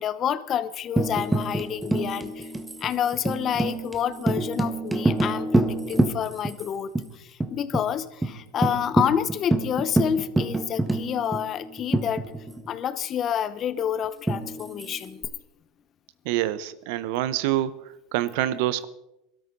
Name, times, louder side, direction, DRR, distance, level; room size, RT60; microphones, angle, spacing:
voice 1, 0.0-2.5 2.8-12.2 12.7-15.2, left 9 dB, 40° left, 15 dB, 1.0 m, -28 dB
Tambourine, 1.0-6.6 6.9-7.0 7.4-7.9 8.2-8.3 8.6-12.7 14.3-15.2, right 2 dB, 10° right, 1.6 m, -26 dB
voice 2, 16.2-17.7 18.1-18.9, right 13 dB, 70° right, 16 dB, 0.9 m, -26 dB
22.5 x 13.0 x 4.0 m, 0.90 s
hypercardioid pair, 95°, 0 cm